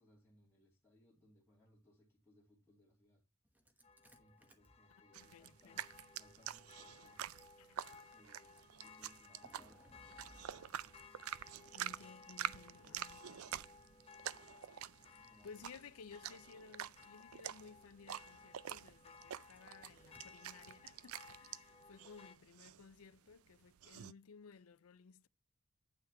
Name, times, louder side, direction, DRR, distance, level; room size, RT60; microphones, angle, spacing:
voice 1, 0.0-3.2 4.2-7.4 8.1-10.0 11.8-13.8 15.2-15.5, equal, 10° left, 2.9 m, -69 dB
Engine starting, 3.4-22.4, equal, 10° right, 1.1 m, -71 dB
sound 1, 3.8-22.4, left 5 dB, 30° left, 0.8 m, -61 dB
voice 2, 5.1-5.8 7.6-7.8 11.7-13.4 15.0-25.3, left 5 dB, 85° left, 0.5 m, -58 dB
sound 2, 5.1-24.1, right 10 dB, 85° right, 0.4 m, -48 dB
9.3 x 5.8 x 4.2 m
head